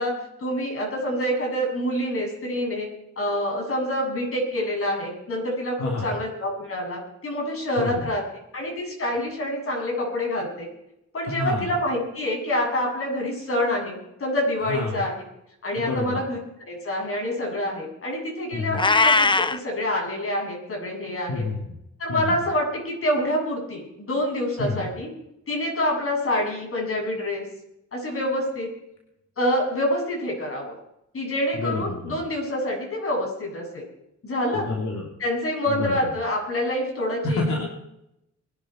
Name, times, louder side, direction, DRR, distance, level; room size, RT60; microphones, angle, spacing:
voice 1, 0.0-2.9 3.2-8.2 8.5-10.7 11.1-15.2 15.6-16.4 16.6-21.4 22.0-25.1 25.5-27.4 27.9-28.7 29.4-30.7 31.1-33.8 34.2-34.7 35.2-37.7, left 1 dB, 50° left, 0 dB, 7.8 m, -27 dB
voice 2, 5.8-6.1 7.8-8.1 11.2-11.7 14.7-15.0 15.7-16.2 18.5-18.8 21.3-21.6 22.1-22.3 24.6-24.9 31.5-32.1 34.5-35.1 35.7-36.1 37.2-37.6, left 3 dB, 70° left, -1 dB, 3.1 m, -28 dB
Meow, 18.7-19.6, left 3 dB, 15° left, 0.7 m, -19 dB
22.5 x 11.5 x 4.6 m, 0.81 s
cardioid pair, 110°, 29 cm